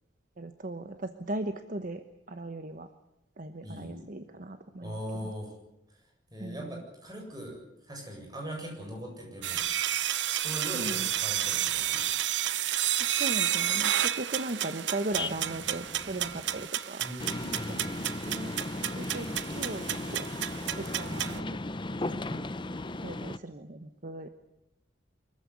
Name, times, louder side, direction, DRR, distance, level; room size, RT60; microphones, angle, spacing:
voice 1, 0.4-2.9 3.4-5.3 6.4-6.8 10.7-11.1 13.0-17.1 17.7-18.0 18.2-20.3 20.8-21.6 22.0-22.4 23.0-24.3, right 2 dB, 50° right, 9 dB, 1.1 m, -38 dB
voice 2, 3.6-4.0 4.8-5.5 6.3-7.6 7.9-9.6 10.4-12.1 17.0-18.1, equal, 20° right, 1 dB, 7.8 m, -40 dB
sound 1, 9.4-21.4, right 11 dB, 80° right, 0.8 m, -31 dB
sound 2, 15.1-16.7 17.2-23.4, left 2 dB, 25° left, 0.8 m, -37 dB
24.5 x 15.0 x 9.8 m, 0.88 s
head